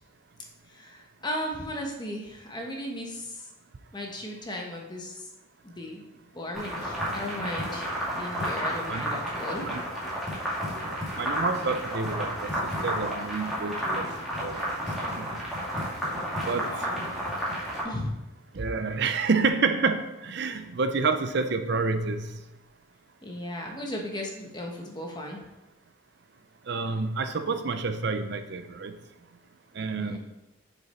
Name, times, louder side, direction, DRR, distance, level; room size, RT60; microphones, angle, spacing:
voice 1, 0.7-3.5 3.9-5.3 5.6-6.1 6.3-7.9 8.2-9.6 16.4-17.3 17.8-18.1 23.2-25.4 30.0-30.2, left 1 dB, 20° left, 1 dB, 1.1 m, -36 dB
sound 1, 6.5-17.8, equal, ahead, 2.3 m, -31 dB
voice 2, 10.8-12.5 12.8-14.0 14.4-14.7 15.0-15.2 16.4-16.7 18.5-22.3 26.7-28.9 29.7-30.2, right 4 dB, 55° right, 8 dB, 0.5 m, -28 dB
6.9 x 6.9 x 4.3 m, 0.97 s
head